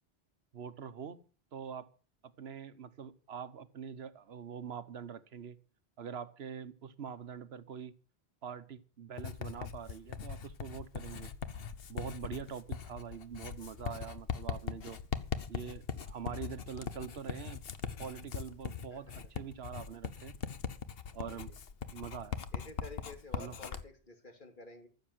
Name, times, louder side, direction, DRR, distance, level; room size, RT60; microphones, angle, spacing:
voice 1, 0.5-1.2 1.5-1.9 2.4-5.6 6.0-7.9 8.4-11.3 11.9-15.0 15.5-17.6 18.0-20.3 21.1-21.5 21.9-22.4 23.3-23.6, right 7 dB, 80° right, 1.2 m, -44 dB
Writing, 9.2-23.8, left 7 dB, 65° left, 1.1 m, -41 dB
voice 2, 18.9-19.3 21.3-21.6 22.5-24.9, left 3 dB, 50° left, 2.8 m, -51 dB
14.5 x 7.2 x 7.9 m
omnidirectional pair, 1.0 m